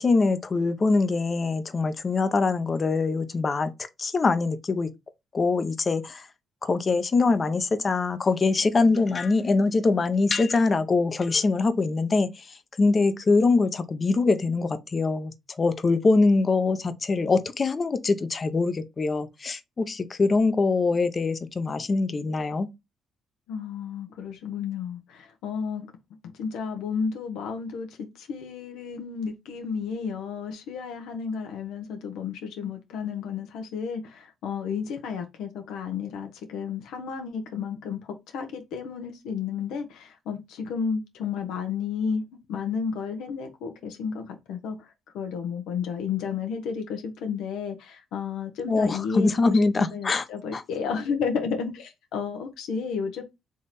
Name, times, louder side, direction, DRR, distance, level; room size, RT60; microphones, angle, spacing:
voice 1, 0.0-3.7 4.0-4.9 5.3-6.3 6.6-12.5 12.8-22.7 48.7-50.2 50.5-50.6, left 3 dB, 35° left, 0.7 m, -23 dB
voice 2, 23.5-25.9 26.4-38.0 38.3-42.2 42.5-44.8 45.1-49.6 49.9-53.2, left 6 dB, 90° left, 0.9 m, -32 dB
3.6 x 3.1 x 4.1 m
cardioid pair, 90°, 0 cm